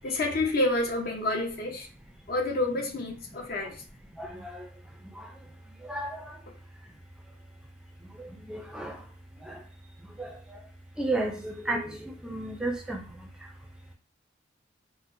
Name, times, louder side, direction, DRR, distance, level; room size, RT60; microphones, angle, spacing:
voice 1, 0.0-1.9 2.3-3.8, left 2 dB, 55° left, 0.7 m, -28 dB
voice 2, 4.2-4.5 5.9-6.1 8.5-8.9 9.5-9.6 10.2-10.3 11.0-13.0, right 2 dB, 5° right, 0.4 m, -32 dB
4.1 x 2.0 x 2.5 m
head